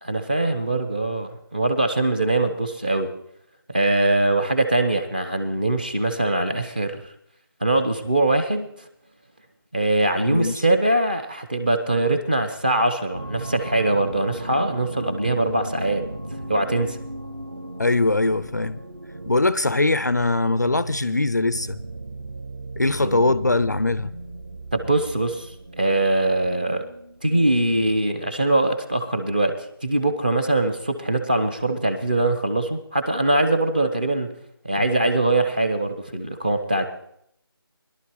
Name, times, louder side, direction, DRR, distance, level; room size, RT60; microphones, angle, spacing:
voice 1, 0.0-3.1 3.7-7.0 7.6-8.7 9.7-16.0 16.5-17.0 23.0-23.3 24.7-25.5 25.8-26.8 27.2-34.3 34.6-36.9, right 2 dB, 20° right, 0.8 m, -22 dB
sound 1, 13.1-28.2, right 2 dB, 40° right, 1.4 m, -36 dB
voice 2, 17.8-18.8 19.3-21.8 22.8-24.1 34.8-34.9, left 2 dB, 45° left, 0.4 m, -21 dB
21.0 x 11.5 x 3.1 m
figure-of-eight pair, 175°, 13 cm